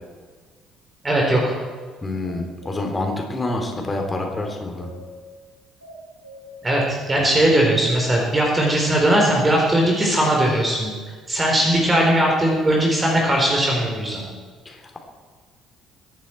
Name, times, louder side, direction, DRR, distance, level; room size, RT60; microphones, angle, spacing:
voice 1, 1.0-1.5 6.6-10.9 11.3-14.3, right 1 dB, 20° right, -1 dB, 3.7 m, -19 dB
voice 2, 2.0-4.9 7.2-7.3 14.6-15.0, left 2 dB, 20° left, 2 dB, 3.4 m, -27 dB
sound 1, 2.2-2.8 4.3-5.0 5.8-6.5, right 2 dB, 90° right, 3.4 m, -43 dB
23.0 x 11.0 x 4.4 m, 1.5 s
figure-of-eight pair, 50°, 0 cm